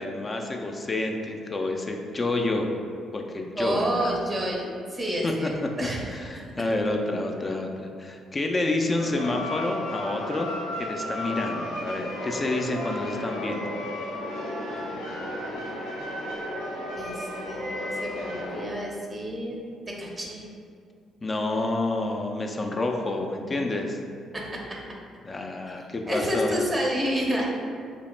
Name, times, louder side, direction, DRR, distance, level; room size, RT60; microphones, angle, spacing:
voice 1, 0.0-2.7 3.1-4.1 5.2-5.3 6.1-10.5 10.8-13.8 21.2-24.0 25.2-26.6, left 2 dB, 30° left, 2 dB, 0.4 m, -29 dB
voice 2, 3.6-5.5 5.8-6.1 14.7-15.2 16.9-19.6 19.9-20.5 24.3-24.6 26.1-27.5, equal, 20° right, -2 dB, 0.5 m, -29 dB
sound 1, 9.0-18.6, left 1 dB, 80° left, 0.6 m, -33 dB
3.0 x 2.0 x 3.2 m, 2.3 s
hypercardioid pair, 45°, 0 cm